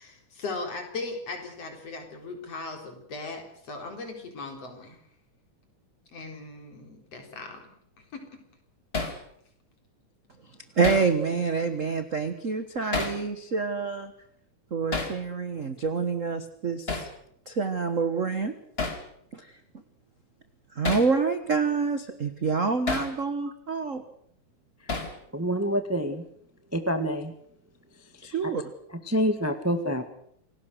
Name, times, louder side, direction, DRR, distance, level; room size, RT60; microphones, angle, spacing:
voice 1, 0.0-5.0 6.1-7.7 8.1-8.4, left 3 dB, 55° left, 4 dB, 4.9 m, -38 dB
Hammer, 8.9-9.2 10.8-11.1 12.9-13.2 14.9-15.2 16.9-17.1 18.8-19.0 20.8-21.1 22.9-23.1 24.9-25.2, left 3 dB, 20° left, 2.5 m, -30 dB
voice 2, 10.8-14.1 14.7-17.1 17.5-18.5 19.3-19.5 20.7-24.0 28.2-28.6, right 5 dB, 55° right, 9 dB, 0.8 m, -27 dB
voice 3, 25.3-26.2 26.7-27.3 28.4-28.5 29.1-30.1, equal, 10° right, 8 dB, 0.9 m, -27 dB
27.5 x 18.5 x 6.6 m, 0.68 s
omnidirectional pair, 3.5 m